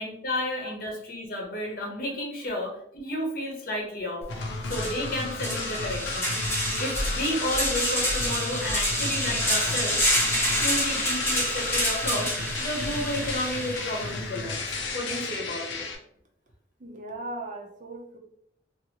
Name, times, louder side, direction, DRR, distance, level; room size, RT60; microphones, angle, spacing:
voice 1, 0.0-4.2 4.6-6.3 6.8-10.0 10.6-12.3 12.6-14.6 14.9-15.8, left 1 dB, 50° left, 0 dB, 0.8 m, -32 dB
sound 1, 4.2-4.3 4.6-14.2, equal, 15° left, 0.8 m, -28 dB
sound 2, 4.3-15.9, left 3 dB, 85° left, 0.6 m, -34 dB
voice 2, 16.8-18.2, right 2 dB, 45° right, 1 dB, 0.6 m, -38 dB
2.8 x 2.6 x 2.8 m, 0.71 s
head